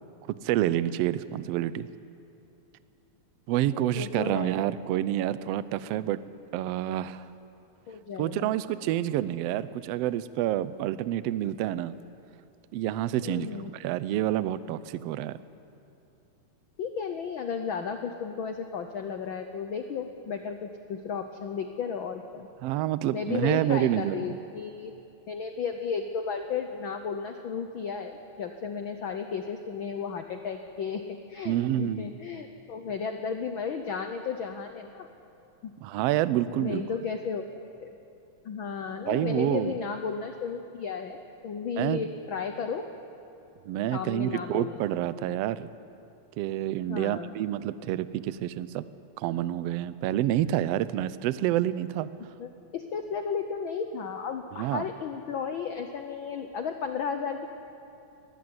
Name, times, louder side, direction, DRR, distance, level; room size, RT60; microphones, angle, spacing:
voice 1, 0.3-1.9 3.5-6.2 6.5-7.3 8.2-11.9 12.7-15.4 22.6-24.4 31.4-32.1 35.8-36.8 39.1-39.7 41.8-42.0 43.6-45.7 46.4-48.8 49.2-52.1 54.6-54.9, right 13 dB, 85° right, 15 dB, 1.4 m, -28 dB
voice 2, 3.7-4.6 7.9-8.5 13.2-13.7 16.8-22.5 23.1-24.9 25.3-35.1 35.6-35.7 36.6-37.5 37.8-37.9 38.4-42.9 43.9-44.8 46.9-47.4 52.4-57.5, left 6 dB, 85° left, 6 dB, 1.1 m, -34 dB
20.5 x 15.5 x 9.7 m, 2.8 s
omnidirectional pair, 3.6 m